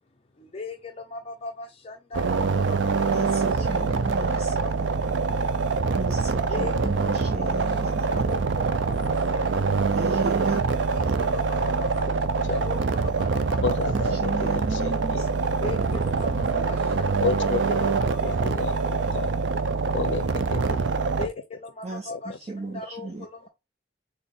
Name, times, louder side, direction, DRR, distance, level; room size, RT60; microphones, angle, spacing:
voice 1, 0.3-4.7 6.5-7.8 8.1-9.6 10.9-12.0 12.5-13.7 15.6-18.5 21.0-23.5, left 3 dB, 35° left, 0.6 m, -39 dB
sound 1, 2.1-21.3, right 4 dB, 85° right, 0.5 m, -25 dB
voice 2, 3.1-4.9 5.9-8.0 9.9-10.6 11.1-11.2 13.9-15.3 21.8-23.5, right 2 dB, 35° right, 0.7 m, -35 dB
voice 3, 13.6-15.2 17.2-17.8 18.1-19.3 19.9-20.8 22.1-22.2, left 4 dB, 80° left, 0.5 m, -31 dB
4.2 x 3.2 x 3.5 m
head